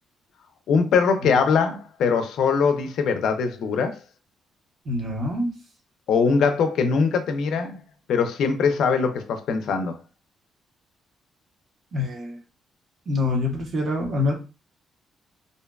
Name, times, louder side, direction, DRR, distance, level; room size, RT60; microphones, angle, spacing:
voice 1, 0.7-4.0 6.1-7.8 8.1-10.0, left 5 dB, 75° left, 0.4 m, -22 dB
voice 2, 4.8-5.5 11.9-12.4 13.1-14.3, left 2 dB, 55° right, 0.9 m, -25 dB
2.5 x 2.2 x 2.2 m
cardioid pair, 90°, 0 cm